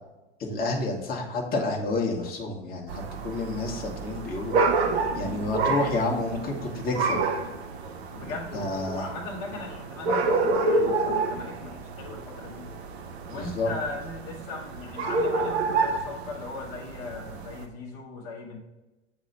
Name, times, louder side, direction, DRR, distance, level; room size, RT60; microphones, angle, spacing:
voice 1, 0.4-4.5 5.1-7.2 8.5-9.1 13.3-13.7, left 2 dB, 25° left, 0 dB, 1.3 m, -29 dB
sound 1, 2.9-17.7, right 3 dB, 60° right, 1.0 m, -29 dB
voice 2, 8.1-12.7 13.3-18.6, left 3 dB, 40° left, -2 dB, 1.2 m, -38 dB
8.2 x 3.0 x 4.0 m, 1.0 s
figure-of-eight pair, 100°, 36 cm